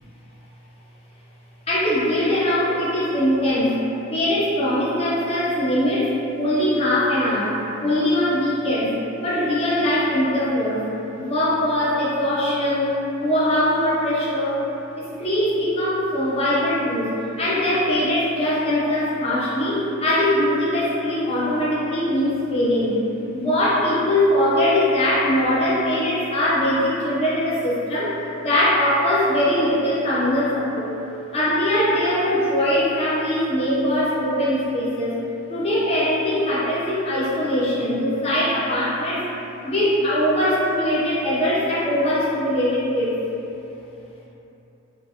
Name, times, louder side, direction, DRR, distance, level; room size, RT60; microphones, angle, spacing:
voice 1, 1.7-3.7 4.1-6.1 6.4-7.6 7.8-8.9 9.2-10.8 11.2-12.9 13.2-14.6 15.2-17.1 17.4-23.0 23.3-28.1 28.4-30.9 31.3-35.1 35.5-39.2 39.6-43.1, left 1 dB, 30° left, -9 dB, 0.4 m, -21 dB
2.4 x 2.3 x 2.6 m, 3.0 s
head